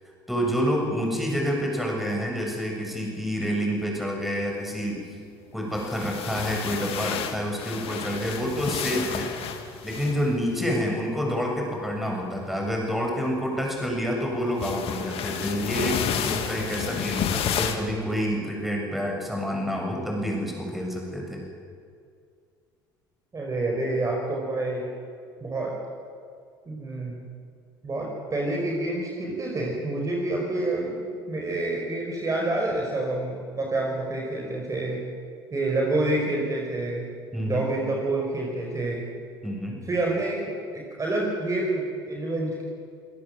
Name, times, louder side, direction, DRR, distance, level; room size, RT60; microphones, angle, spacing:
voice 1, 0.3-5.0 5.5-9.3 9.8-21.4 37.3-37.7 39.4-39.8, equal, ahead, 0 dB, 7.3 m, -28 dB
sound 1, 5.6-10.7 12.4-12.7 14.6-17.8, left 8 dB, 55° left, 2.3 m, -31 dB
voice 2, 23.3-24.8 25.4-25.7 26.7-27.2 27.8-31.0 31.3-35.0 35.5-37.0 37.4-39.0 39.9-40.4 40.7-42.6, right 2 dB, 30° right, 0 dB, 5.0 m, -28 dB
28.0 x 17.0 x 7.7 m, 2.3 s
hypercardioid pair, 65°, 12 cm